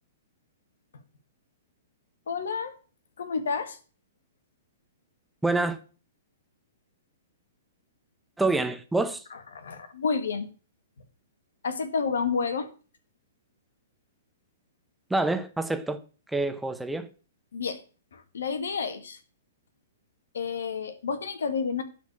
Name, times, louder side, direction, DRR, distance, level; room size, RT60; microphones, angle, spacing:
voice 1, 2.3-2.7 3.2-3.8 9.5-10.5 11.6-12.7 17.5-17.8 18.1-19.2 20.3-21.8, left 5 dB, 80° left, 1.8 m, -30 dB
voice 2, 5.4-5.8 8.4-9.2 15.1-16.0 16.3-17.1, right 2 dB, 5° right, 0.9 m, -27 dB
11.5 x 4.6 x 8.3 m
hypercardioid pair, 135°, 0 cm